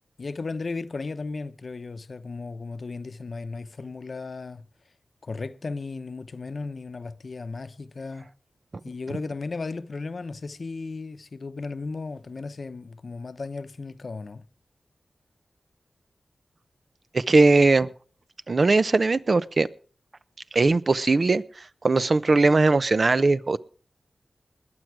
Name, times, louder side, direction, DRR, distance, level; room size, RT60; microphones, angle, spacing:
voice 1, 0.2-4.6 5.2-8.3 8.8-14.5, left 3 dB, 60° left, 0.8 m, -35 dB
voice 2, 17.1-17.9 18.5-19.7 20.5-21.4 21.8-23.6, right 3 dB, 55° right, 0.7 m, -19 dB
21.0 x 7.9 x 4.8 m
cardioid pair, 55°, 0 cm